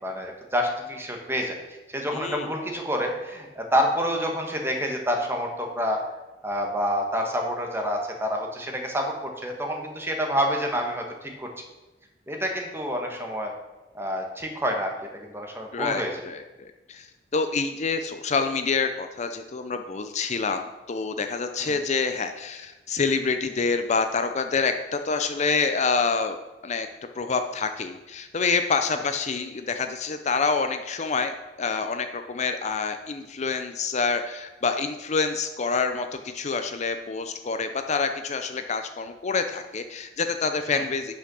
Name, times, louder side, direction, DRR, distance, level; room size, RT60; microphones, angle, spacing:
voice 1, 0.0-1.6 1.9-6.0 6.4-11.5 12.3-13.5 13.9-16.1 21.6-21.7 40.7-40.8, equal, 15° right, 2 dB, 1.3 m, -28 dB
voice 2, 2.1-2.5 15.7-17.1 17.3-26.4 26.6-26.9 27.2-41.1, left 4 dB, 40° left, 7 dB, 0.5 m, -27 dB
8.6 x 5.9 x 6.2 m, 1.1 s
head